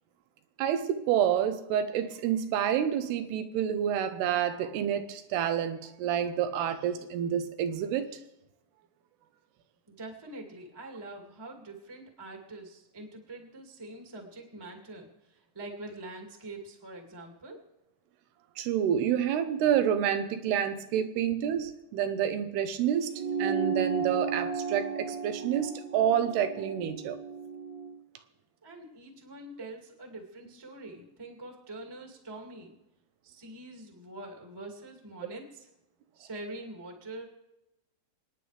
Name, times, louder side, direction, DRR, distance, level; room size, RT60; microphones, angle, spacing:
voice 1, 0.6-8.2 18.6-27.2, right 9 dB, 85° right, 9 dB, 3.0 m, -28 dB
voice 2, 9.9-17.6 28.6-32.8 33.2-35.7 36.1-37.2, right 2 dB, 10° right, 0 dB, 1.2 m, -44 dB
sound 1, 23.1-27.9, right 5 dB, 70° right, 3.1 m, -33 dB
28.5 x 9.6 x 3.4 m, 0.92 s
omnidirectional pair, 4.6 m